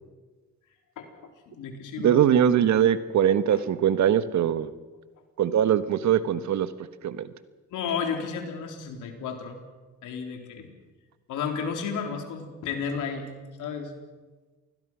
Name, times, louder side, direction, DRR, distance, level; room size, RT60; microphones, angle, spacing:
voice 1, 1.5-2.3 3.5-3.6 7.7-9.6 10.0-10.7 11.3-13.3 13.6-13.9, left 6 dB, 85° left, 4 dB, 3.9 m, -32 dB
voice 2, 2.0-4.7 5.4-6.7 7.0-7.3, right 9 dB, 70° right, 12 dB, 1.4 m, -22 dB
28.0 x 20.5 x 6.2 m, 1.3 s
cardioid pair, 90°, 30 cm